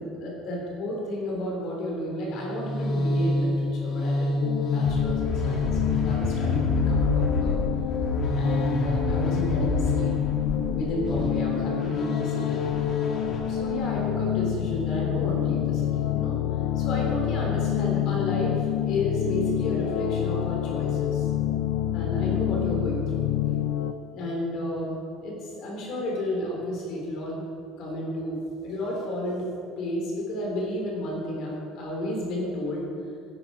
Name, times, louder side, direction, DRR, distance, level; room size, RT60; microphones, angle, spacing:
voice 1, 0.0-4.3 4.7-7.6 8.3-10.4 10.7-12.6 13.5-16.4 16.8-21.3 21.9-23.3 24.1-27.4 27.8-29.5 29.8-32.9, left 1 dB, 45° left, -2 dB, 3.8 m, -32 dB
sound 1, 2.3-14.1, left 1 dB, 30° left, 2.0 m, -28 dB
sound 2, 4.4-23.9, left 11 dB, 80° left, 0.8 m, -27 dB
14.5 x 11.0 x 5.0 m, 2.4 s
cardioid pair, 170°, 0 cm